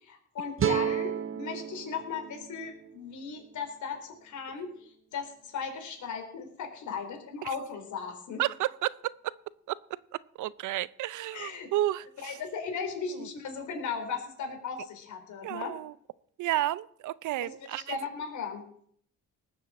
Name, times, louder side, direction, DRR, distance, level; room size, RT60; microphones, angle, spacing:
voice 1, 0.0-8.4 11.3-11.7 12.2-15.8 17.4-18.6, left 5 dB, 70° left, 4.1 m, -37 dB
sound 1, 0.6-3.8, right 9 dB, 45° right, 1.0 m, -33 dB
voice 2, 8.4-9.3 9.7-9.8 10.4-12.4 13.2-13.3 15.4-15.9 16.4-18.0, right 15 dB, 80° right, 0.7 m, -31 dB
19.0 x 7.4 x 7.5 m
cardioid pair, 90°, 30 cm